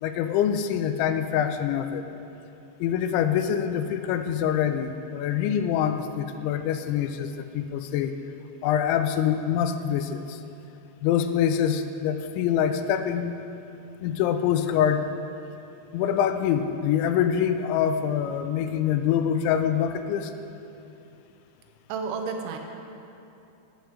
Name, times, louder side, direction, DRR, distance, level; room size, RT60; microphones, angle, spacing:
voice 1, 0.0-2.0 2.8-8.1 8.6-10.4 11.0-13.4 14.0-15.1 15.9-20.3, left 9 dB, 85° left, 9 dB, 2.9 m, -25 dB
voice 2, 21.9-22.6, right 5 dB, 85° right, 4 dB, 3.2 m, -31 dB
8.2 x 8.1 x 6.4 m, 2.8 s
omnidirectional pair, 5.2 m